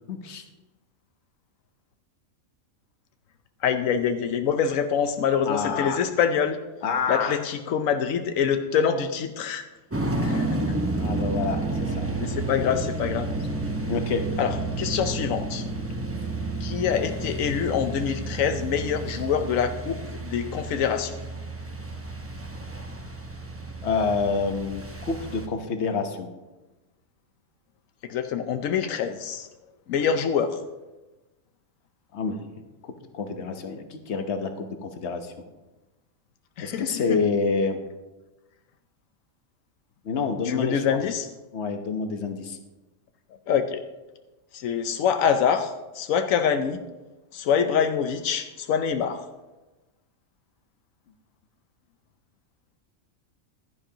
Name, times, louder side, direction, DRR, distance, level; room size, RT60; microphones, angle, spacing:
voice 1, 0.1-0.4 5.5-6.0 6.8-7.4 11.0-12.1 13.9-14.3 23.8-26.3 32.1-32.4 32.8-35.3 36.6-37.8 40.0-41.0 41.5-42.6, left 4 dB, 60° left, 6 dB, 1.3 m, -28 dB
voice 2, 3.6-6.6 7.1-9.6 10.2-10.8 12.2-13.3 14.4-15.6 16.6-21.2 28.0-29.5 29.9-30.6 36.6-37.2 40.4-41.3 43.5-43.8 44.5-46.8 47.3-49.3, left 7 dB, 85° left, 8 dB, 1.1 m, -25 dB
sound 1, 9.9-25.5, right 2 dB, 10° right, 0.9 m, -31 dB
15.5 x 11.5 x 2.9 m, 1.1 s
omnidirectional pair, 1.3 m